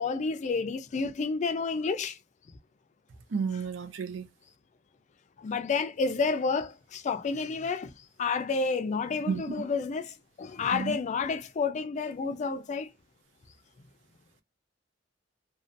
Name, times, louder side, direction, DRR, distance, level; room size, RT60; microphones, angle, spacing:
voice 1, 0.0-2.2 5.4-12.9, left 4 dB, 40° left, 0.3 m, -30 dB
voice 2, 3.3-4.3 9.3-9.4 10.7-10.9, right 6 dB, 80° right, 0.5 m, -31 dB
2.4 x 2.2 x 2.5 m
head